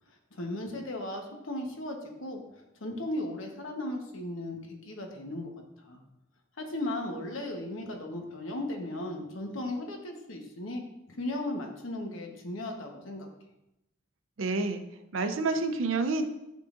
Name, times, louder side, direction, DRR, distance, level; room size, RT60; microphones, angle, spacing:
voice 1, 0.3-2.4 2.8-5.5 5.8-6.0 6.6-13.3, left 1 dB, 85° left, 2 dB, 1.1 m, -36 dB
voice 2, 14.4-14.8 15.1-16.3, right 3 dB, 75° right, 8 dB, 0.6 m, -28 dB
10.5 x 3.7 x 2.5 m, 0.89 s
head